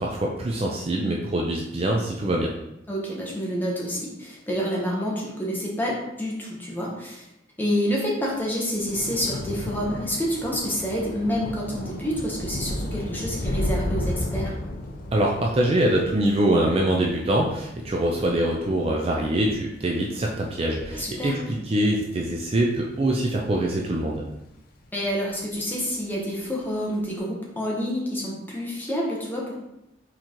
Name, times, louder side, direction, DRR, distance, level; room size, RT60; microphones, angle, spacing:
voice 1, 0.0-2.5 15.1-21.3 21.7-24.2, right 1 dB, 30° right, -1 dB, 0.4 m, -24 dB
voice 2, 2.9-7.2 7.6-14.6 20.9-21.4 24.9-29.6, equal, 10° left, -4 dB, 1.0 m, -28 dB
Thunder / Rain, 8.3-24.9 25.2-25.7 25.9-26.1, left 1 dB, 50° left, 0.6 m, -34 dB
4.4 x 3.8 x 3.0 m, 0.86 s
head